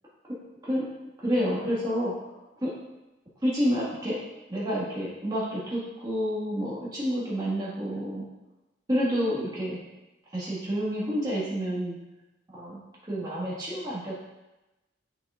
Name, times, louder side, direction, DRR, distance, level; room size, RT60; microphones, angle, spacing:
voice 1, 1.2-2.3 2.6-2.7 3.4-4.2 4.5-8.2 8.9-9.8 10.3-11.9 12.5-14.1, equal, 20° right, -7 dB, 1.7 m, -29 dB
7.5 x 5.7 x 2.5 m, 1.0 s
head